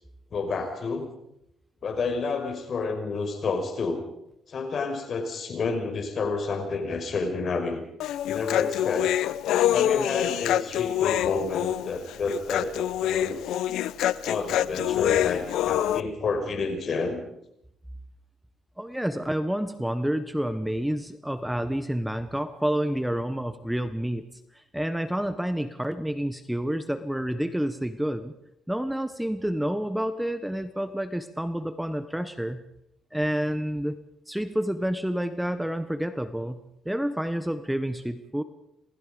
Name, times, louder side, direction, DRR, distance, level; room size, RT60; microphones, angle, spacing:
voice 1, 0.3-1.1 1.8-4.0 4.5-7.8 8.3-9.1 9.7-13.5 14.2-17.2, left 4 dB, 55° left, 6 dB, 5.3 m, -29 dB
Human voice, 8.0-16.0, left 12 dB, 85° left, 0.8 m, -26 dB
voice 2, 18.8-24.2 24.5-28.3 28.7-32.6 33.1-34.0 34.3-36.6 36.8-38.4, equal, 5° right, 11 dB, 1.4 m, -29 dB
27.5 x 19.5 x 5.2 m, 0.78 s
cardioid pair, 90°, 0 cm